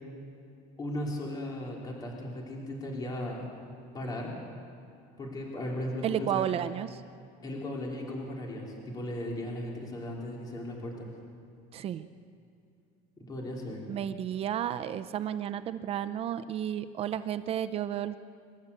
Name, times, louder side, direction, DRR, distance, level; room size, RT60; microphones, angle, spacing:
voice 1, 0.8-3.5 3.9-4.3 5.2-6.5 7.4-11.1 13.2-13.8, left 1 dB, 20° left, -1 dB, 3.4 m, -36 dB
voice 2, 6.0-7.0 11.7-12.0 13.9-18.2, right 10 dB, 30° right, 12 dB, 0.5 m, -32 dB
26.5 x 13.0 x 8.3 m, 2.5 s
cardioid pair, 170°, 19 cm